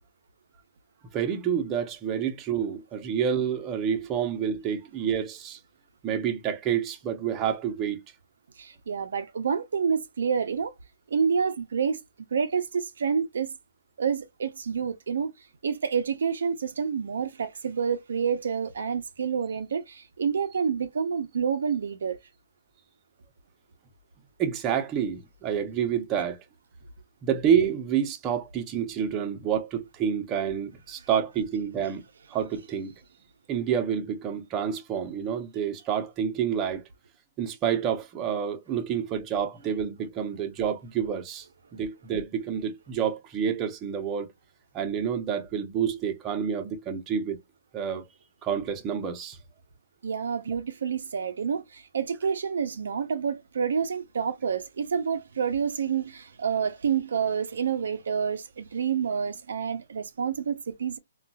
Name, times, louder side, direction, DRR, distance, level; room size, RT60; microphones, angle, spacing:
voice 1, 1.1-5.6 6.0-8.0 24.4-26.4 27.2-32.0 32.3-32.9 33.5-36.8 37.4-41.5 41.7-44.3 44.7-47.4 47.7-48.1 48.4-49.4, right 8 dB, 20° right, 0.7 m, -28 dB
voice 2, 8.6-10.7 11.1-12.0 12.3-13.5 14.0-15.3 15.6-22.2 50.0-61.0, right 6 dB, 70° right, 0.6 m, -28 dB
3.9 x 2.3 x 2.3 m
hypercardioid pair, 145°, 0 cm